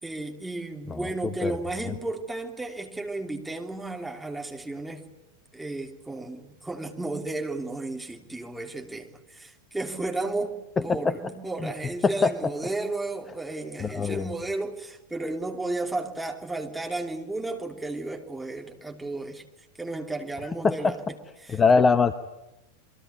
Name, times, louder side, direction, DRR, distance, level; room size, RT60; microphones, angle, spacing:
voice 1, 0.0-5.1 5.5-10.6 10.8-19.4 19.8-21.0 21.4-21.6, right 2 dB, 5° right, 2 dB, 3.0 m, -33 dB
voice 2, 10.8-11.1 11.6-11.7 12.0-12.3 13.8-14.3 20.6-20.9 21.5-22.1, left 4 dB, 15° left, 12 dB, 1.0 m, -22 dB
28.5 x 23.0 x 8.3 m, 0.97 s
figure-of-eight pair, 90°, 0 cm